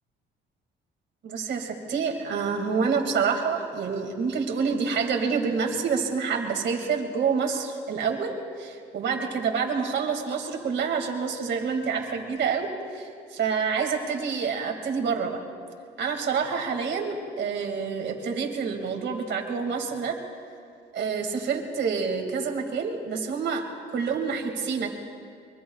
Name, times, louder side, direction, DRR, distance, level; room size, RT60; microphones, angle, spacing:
voice 1, 1.2-12.7 12.9-15.4 16.0-20.2 20.9-24.9, right 5 dB, 65° right, 3 dB, 2.3 m, -27 dB
23.5 x 23.0 x 2.4 m, 2.2 s
cardioid pair, 90°, 20 cm